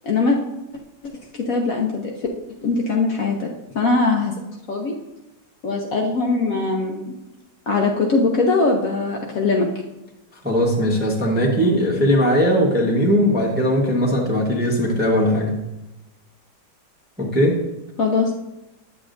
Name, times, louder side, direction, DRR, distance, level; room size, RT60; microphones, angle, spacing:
voice 1, 0.0-0.4 1.3-2.1 2.6-4.3 4.7-5.0 5.6-7.1 7.7-9.7 18.0-18.3, left 3 dB, 60° left, 0 dB, 1.0 m, -21 dB
voice 2, 10.4-15.5 17.2-17.6, equal, 10° right, -2 dB, 0.7 m, -19 dB
9.8 x 7.1 x 2.6 m, 0.98 s
omnidirectional pair, 2.0 m